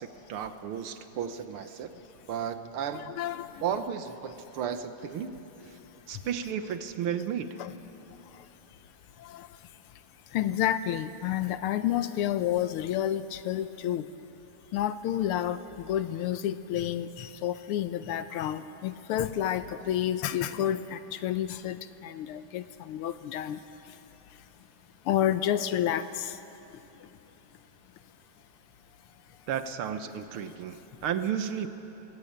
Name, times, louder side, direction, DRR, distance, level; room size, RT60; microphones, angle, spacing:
voice 1, 0.0-1.9 2.3-3.2 3.6-5.8 6.1-7.6 29.5-31.7, right 8 dB, 80° right, 9 dB, 1.8 m, -33 dB
voice 2, 2.9-3.5 7.6-7.7 9.3-9.5 10.3-14.0 14.7-15.6 15.9-23.6 25.1-26.3, left 11 dB, 85° left, 12 dB, 1.6 m, -30 dB
27.0 x 19.5 x 8.7 m, 3.0 s
omnidirectional pair, 2.4 m